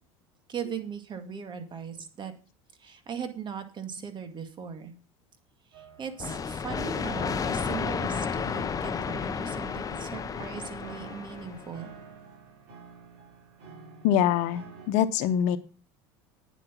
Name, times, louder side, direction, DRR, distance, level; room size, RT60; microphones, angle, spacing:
voice 1, 0.5-2.3 2.8-4.9 5.7-11.9, right 7 dB, 35° right, 8 dB, 2.0 m, -39 dB
sound 1, 5.7-14.9, right 4 dB, 65° right, 5.0 m, -49 dB
sound 2, 6.2-11.8, left 6 dB, 25° left, 0.9 m, -32 dB
voice 2, 14.0-15.6, left 10 dB, 65° left, 11 dB, 1.0 m, -24 dB
9.3 x 7.7 x 6.1 m, 0.35 s
supercardioid pair, 95°, 13 cm